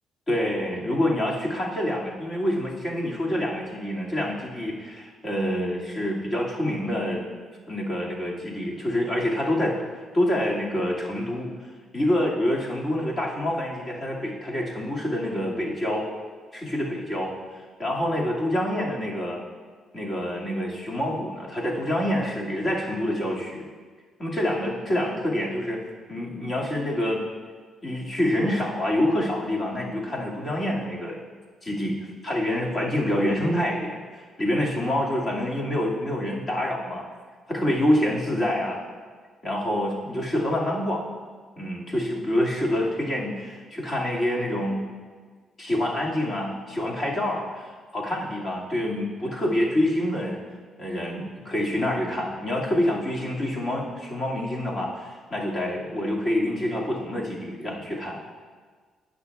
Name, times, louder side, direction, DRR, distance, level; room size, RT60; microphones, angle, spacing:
voice 1, 0.3-7.3 7.7-11.5 11.9-16.1 16.5-17.3 17.8-19.4 19.9-23.7 24.2-25.8 26.1-27.2 27.8-31.2 31.6-32.0 32.2-37.0 37.5-38.8 39.4-41.1 41.6-44.8 45.6-50.4 50.8-58.2, left 1 dB, 30° left, -4 dB, 2.1 m, -27 dB
17.5 x 6.2 x 2.3 m, 1.5 s
cardioid pair, 90°, 0 cm